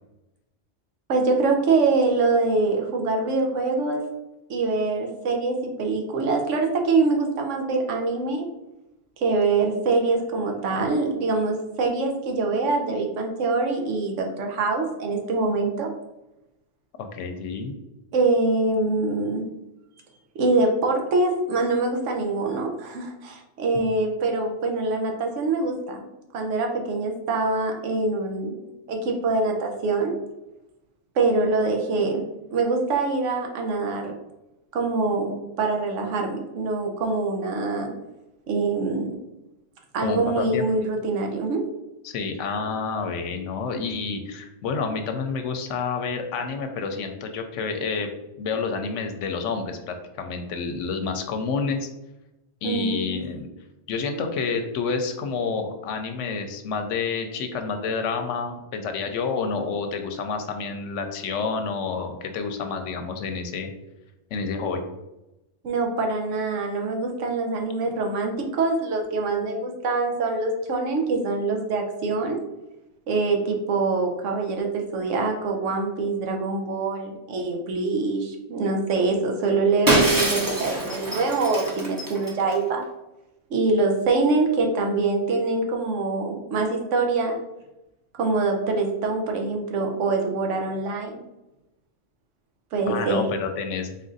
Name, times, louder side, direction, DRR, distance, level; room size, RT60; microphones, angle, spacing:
voice 1, 1.1-4.0 4.5-8.5 9.2-15.9 18.1-19.5 20.4-26.1 26.3-30.2 31.1-32.2 32.5-34.1 34.7-37.9 38.5-39.1 39.9-41.6 52.6-53.3 65.6-72.4 73.1-82.8 83.5-87.4 88.1-91.2 92.7-93.2, right 3 dB, 85° right, 2 dB, 1.0 m, -24 dB
voice 2, 17.0-17.7 23.7-23.9 40.0-40.6 42.0-48.1 48.4-51.9 52.6-53.5 53.9-63.7 64.3-64.8 92.9-93.9, left 5 dB, 80° left, 5 dB, 0.9 m, -29 dB
Shatter, 79.9-82.6, right 1 dB, 25° right, 0.5 m, -25 dB
4.0 x 2.5 x 3.8 m, 0.95 s
omnidirectional pair, 1.2 m